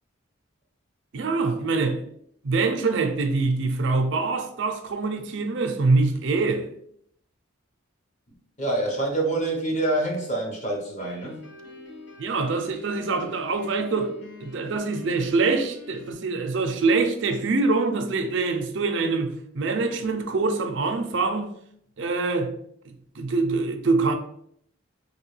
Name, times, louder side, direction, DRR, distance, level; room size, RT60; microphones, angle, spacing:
voice 1, 1.1-2.0 2.4-6.7 12.2-14.1 14.4-21.5 22.0-22.5 22.8-24.1, right 3 dB, 60° right, 0.4 m, -24 dB
voice 2, 8.6-11.4, right 2 dB, 35° left, 0.8 m, -26 dB
Piano, 11.0-16.1, left 2 dB, 60° left, 1.3 m, -45 dB
2.9 x 2.7 x 3.1 m
head